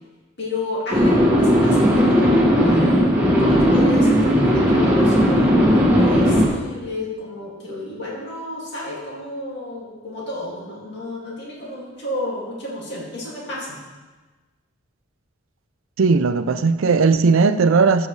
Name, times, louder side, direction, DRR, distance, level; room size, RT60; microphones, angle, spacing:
voice 1, 0.4-13.8, left 1 dB, 60° left, -5 dB, 2.3 m, -31 dB
sound 1, 0.9-6.5, equal, 10° right, 1.8 m, -16 dB
voice 2, 16.0-18.1, right 4 dB, 80° right, 12 dB, 0.5 m, -17 dB
12.5 x 7.7 x 3.2 m, 1.3 s
head